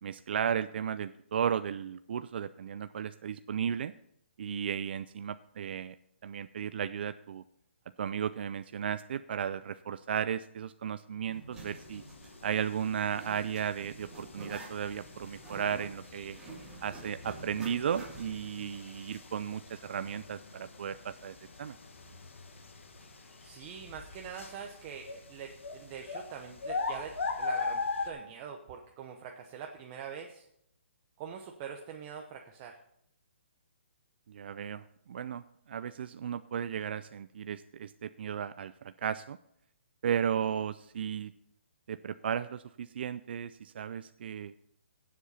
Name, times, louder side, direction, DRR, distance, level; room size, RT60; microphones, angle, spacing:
voice 1, 0.0-3.9 4.4-6.0 6.2-7.4 8.0-12.0 12.4-16.4 16.8-21.8 34.3-39.4 40.0-41.3 41.9-44.5, right 8 dB, 55° right, 13 dB, 0.4 m, -35 dB
Zipper (clothing), 11.2-18.5, right 2 dB, 10° right, 3.0 m, -49 dB
sound 1, 11.5-28.1, left 4 dB, 85° left, 1.8 m, -41 dB
voice 2, 23.4-30.4 31.2-32.7, right 7 dB, 30° right, 3 dB, 0.8 m, -44 dB
16.0 x 7.5 x 4.2 m, 0.76 s
hypercardioid pair, 155°, 7 cm